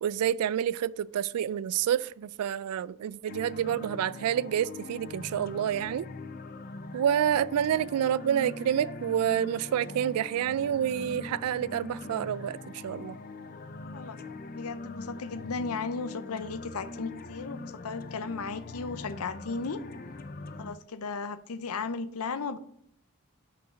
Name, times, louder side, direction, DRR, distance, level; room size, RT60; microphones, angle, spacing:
voice 1, 0.0-6.1 6.9-13.2, right 9 dB, 90° right, 0.3 m, -28 dB
sound 1, 3.3-20.7, left 2 dB, 40° left, 0.4 m, -42 dB
voice 2, 14.5-19.8 20.6-22.6, left 4 dB, 80° left, 0.6 m, -35 dB
6.4 x 5.5 x 5.0 m
head